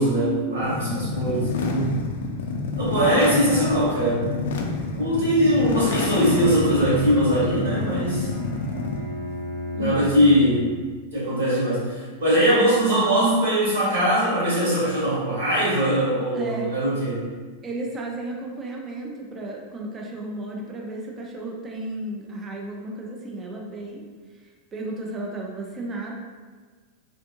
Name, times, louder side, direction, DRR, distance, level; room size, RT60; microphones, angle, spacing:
voice 1, 0.0-2.0 2.8-4.3 4.9-8.3 9.7-10.7 11.1-17.3, right 1 dB, 65° right, -8 dB, 1.5 m, -21 dB
sound 1, 0.6-9.1, left 3 dB, 60° left, 0.3 m, -28 dB
voice 2, 0.9-1.4 9.8-10.3 16.3-16.7 17.6-24.0 24.7-26.1, right 2 dB, 20° right, -1 dB, 0.6 m, -34 dB
Bowed string instrument, 6.1-11.0, left 2 dB, 80° right, 1.2 m, -33 dB
3.4 x 2.6 x 2.5 m, 1.5 s
figure-of-eight pair, 90°, 0 cm